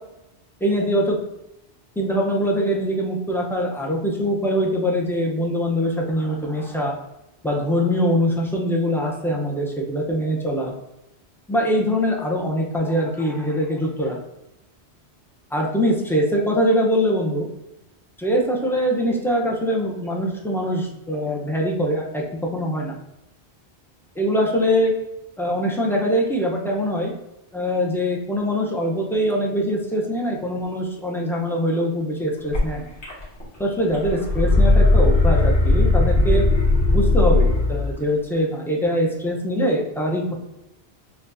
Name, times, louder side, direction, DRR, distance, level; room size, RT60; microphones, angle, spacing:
voice 1, 0.6-1.2 2.0-6.9 7.4-10.7 11.5-14.2 15.5-17.5 18.2-22.2 22.5-23.0 24.2-24.9 25.4-27.1 27.5-32.8 33.6-36.4 36.9-40.3, equal, 5° left, -1 dB, 0.4 m, -23 dB
sound 1, 32.5-32.6 33.0-33.6 33.9-37.8, left 2 dB, 85° left, 1.7 m, -17 dB
6.7 x 2.3 x 2.5 m, 0.91 s
omnidirectional pair, 1.1 m